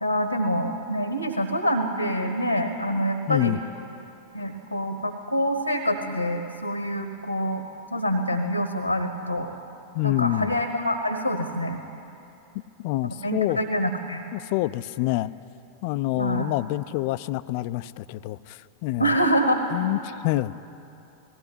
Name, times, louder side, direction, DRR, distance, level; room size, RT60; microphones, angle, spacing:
voice 1, 0.0-3.6 4.3-7.6 7.9-9.5 10.0-11.8 13.0-14.2 16.2-16.5 19.0-19.6, equal, 90° left, 8 dB, 1.2 m, -26 dB
voice 2, 3.3-3.6 9.9-10.6 12.8-13.6 14.3-15.3 15.8-19.1 19.7-20.5, left 17 dB, 45° left, 16 dB, 0.5 m, -27 dB
19.0 x 16.5 x 9.8 m, 2.8 s
figure-of-eight pair, 90°, 0 cm